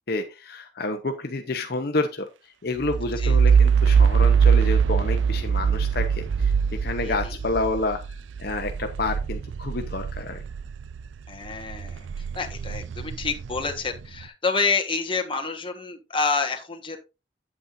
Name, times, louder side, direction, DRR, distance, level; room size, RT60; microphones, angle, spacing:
voice 1, 0.1-2.3 2.6-6.5 6.8-8.0 8.4-10.4, left 2 dB, 55° left, 5 dB, 0.8 m, -29 dB
sound 1, 2.8-11.1 11.5-14.1, right 6 dB, 75° right, 0.4 m, -22 dB
voice 2, 7.0-7.4 11.3-12.1 12.3-17.0, left 4 dB, 25° left, 4 dB, 1.4 m, -28 dB
8.7 x 8.5 x 2.6 m, 0.28 s
head